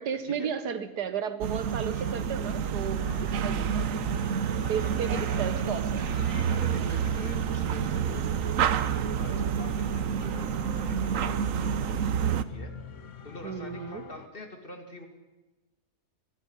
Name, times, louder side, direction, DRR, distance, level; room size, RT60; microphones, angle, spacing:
voice 1, 0.0-3.9 4.7-6.0 6.8-7.1 13.4-14.0, right 7 dB, 80° right, 11 dB, 1.7 m, -34 dB
sound 1, 1.4-12.4, right 8 dB, 60° right, 1.1 m, -28 dB
voice 2, 1.6-2.2 3.0-3.3 4.6-5.4 6.4-8.7 9.2-12.7 13.2-15.1, left 1 dB, 35° left, 4 dB, 2.6 m, -46 dB
sound 2, 2.9-14.3, left 7 dB, 55° left, 1.2 m, -44 dB
25.5 x 19.5 x 5.6 m, 1.1 s
omnidirectional pair, 1.7 m